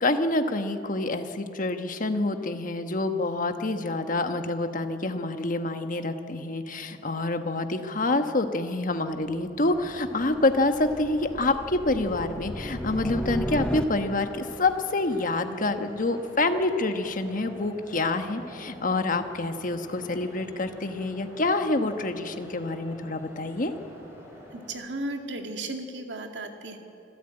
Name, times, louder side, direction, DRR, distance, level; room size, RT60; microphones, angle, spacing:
voice 1, 0.0-23.7, left 2 dB, 50° left, 7 dB, 1.3 m, -27 dB
sound 1, 9.2-14.4, equal, 5° left, 0.6 m, -36 dB
sound 2, 9.6-24.7, equal, 15° right, 5.5 m, -48 dB
voice 2, 24.5-26.8, right 2 dB, 75° right, 4 dB, 2.2 m, -35 dB
26.0 x 13.5 x 9.0 m, 2.8 s
head